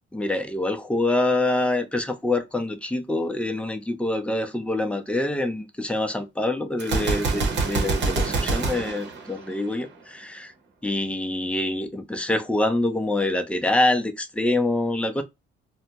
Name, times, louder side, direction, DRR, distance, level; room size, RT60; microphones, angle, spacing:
voice 1, 0.1-10.5 10.8-15.2, left 2 dB, 5° left, 0.5 m, -25 dB
Gunshot gunfire, 6.8-9.9, right 3 dB, 60° right, 0.9 m, -26 dB
2.5 x 2.2 x 2.8 m
cardioid pair, 90°, 20 cm